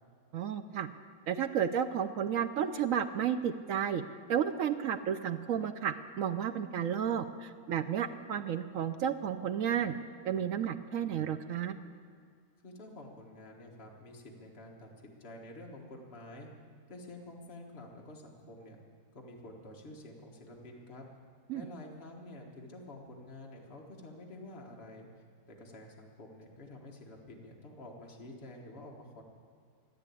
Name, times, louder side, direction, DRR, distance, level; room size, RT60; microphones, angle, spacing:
voice 1, 0.3-0.9 1.3-4.0 4.3-9.9 10.2-11.8 21.5-21.7, right 8 dB, 65° right, 10 dB, 0.9 m, -32 dB
voice 2, 12.6-16.5 16.9-18.8 19.1-21.1 21.5-25.1 25.5-29.2, left 1 dB, 40° left, -1 dB, 1.8 m, -49 dB
15.0 x 9.9 x 8.4 m, 2.1 s
omnidirectional pair, 1.7 m